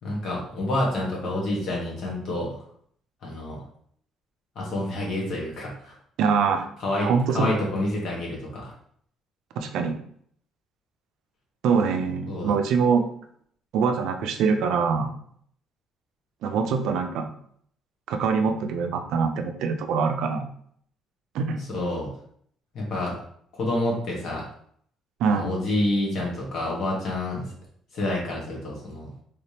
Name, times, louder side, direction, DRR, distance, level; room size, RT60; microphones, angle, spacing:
voice 1, 0.0-2.6 3.2-3.6 4.5-5.9 6.8-8.7 12.3-12.5 21.7-22.1 22.7-23.1 23.6-24.4 25.3-27.4 27.9-29.1, left 1 dB, 50° left, -3 dB, 1.4 m, -28 dB
voice 2, 6.2-6.7 7.0-7.7 9.6-10.0 11.6-13.1 13.7-15.1 16.4-17.3 18.1-20.5 21.3-21.6 25.2-25.5, right 5 dB, 75° right, 6 dB, 0.4 m, -24 dB
3.3 x 3.3 x 2.9 m, 0.63 s
cardioid pair, 150°, 0 cm